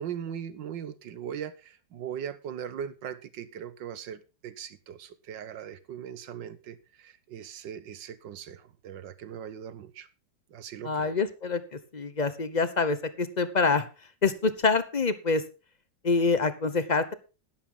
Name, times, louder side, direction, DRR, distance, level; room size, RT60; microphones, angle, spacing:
voice 1, 0.0-10.1 10.5-11.1, right 9 dB, 75° right, 1.7 m, -39 dB
voice 2, 10.8-13.9 14.2-15.4 16.0-17.1, left 4 dB, 35° left, 0.8 m, -26 dB
12.0 x 11.5 x 3.9 m
omnidirectional pair, 2.0 m